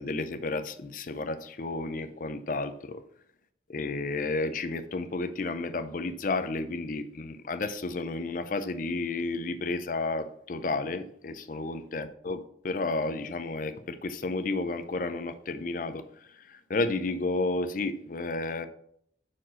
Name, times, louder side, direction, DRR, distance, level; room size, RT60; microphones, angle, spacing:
voice 1, 0.0-3.0 3.7-16.0 16.3-18.7, left 3 dB, 45° left, 0.5 m, -32 dB
5.9 x 4.7 x 6.1 m
head